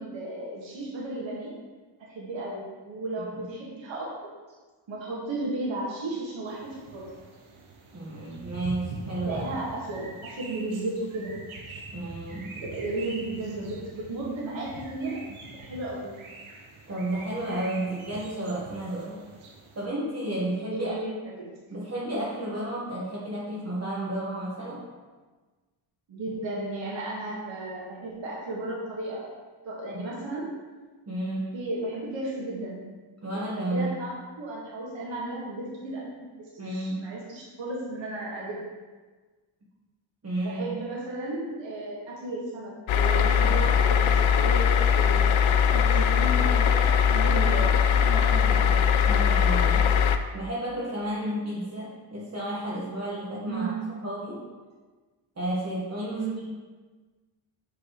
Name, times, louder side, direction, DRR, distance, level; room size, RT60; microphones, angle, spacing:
voice 1, 0.0-1.5 2.1-4.3 4.9-7.0 9.2-10.1 10.4-11.4 12.5-16.1 20.7-21.5 26.1-29.3 29.6-30.5 31.5-32.8 33.6-36.3 36.5-38.6 40.4-48.8 53.5-54.0 56.1-56.5, right 2 dB, 65° right, -5 dB, 1.6 m, -34 dB
sound 1, 6.5-19.8, right 3 dB, 80° right, 1.1 m, -44 dB
voice 2, 7.9-9.6 11.9-12.6 16.9-19.2 19.7-20.9 21.7-24.8 29.9-30.0 31.1-31.5 33.2-33.9 36.6-37.0 40.2-40.7 49.0-49.9 50.3-54.4 55.4-56.3, right 1 dB, 30° right, -6 dB, 1.3 m, -32 dB
sound 2, 42.9-50.2, left 7 dB, 75° left, 0.5 m, -21 dB
5.7 x 5.4 x 3.0 m, 1.3 s
cardioid pair, 90°, 49 cm